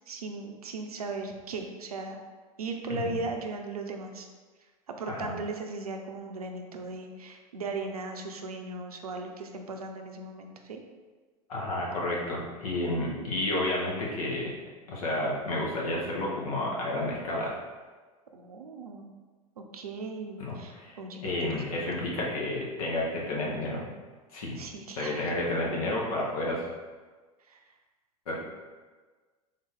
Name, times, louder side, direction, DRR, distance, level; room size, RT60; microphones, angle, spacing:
voice 1, 0.1-2.2 2.6-4.3 4.9-10.8 12.8-13.4 18.3-19.1 19.6-21.8 24.6-25.3 27.5-27.6, right 3 dB, 90° right, 4 dB, 0.5 m, -38 dB
voice 2, 11.5-14.5 14.9-17.5 20.4-20.9 21.2-23.8 24.3-24.6 25.0-26.7 28.3-28.4, left 1 dB, 75° left, -3 dB, 1.1 m, -31 dB
3.5 x 2.7 x 3.7 m, 1.4 s
hypercardioid pair, 85°, 19 cm